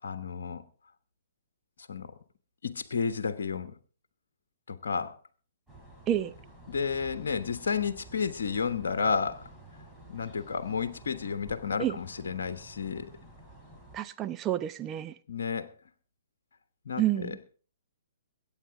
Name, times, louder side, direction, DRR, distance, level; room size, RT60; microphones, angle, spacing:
voice 1, 0.0-0.6 1.9-2.1 2.6-3.7 4.7-5.2 6.7-9.5 10.1-13.1 15.3-15.7 16.8-17.3, left 6 dB, 65° left, 1.2 m, -31 dB
sound 1, 5.7-14.0, right 2 dB, ahead, 3.6 m, -51 dB
voice 2, 13.9-15.2 17.0-17.4, right 12 dB, 20° right, 0.8 m, -29 dB
22.5 x 9.1 x 3.7 m
figure-of-eight pair, 120°, 0 cm